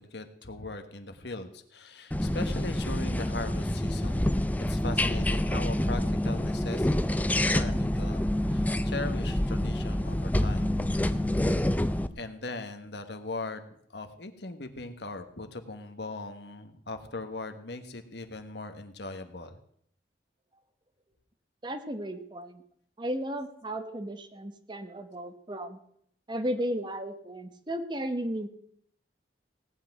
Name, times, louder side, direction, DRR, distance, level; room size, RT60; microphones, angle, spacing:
voice 1, 0.0-4.4 4.7-10.8 12.2-19.6, left 2 dB, 70° left, 8 dB, 1.5 m, -39 dB
sound 1, 2.1-12.1, left 1 dB, 10° left, 0.5 m, -27 dB
voice 2, 21.6-22.6 23.0-25.8 26.3-28.5, equal, 25° right, 9 dB, 1.1 m, -34 dB
17.5 x 6.1 x 9.1 m, 0.69 s
head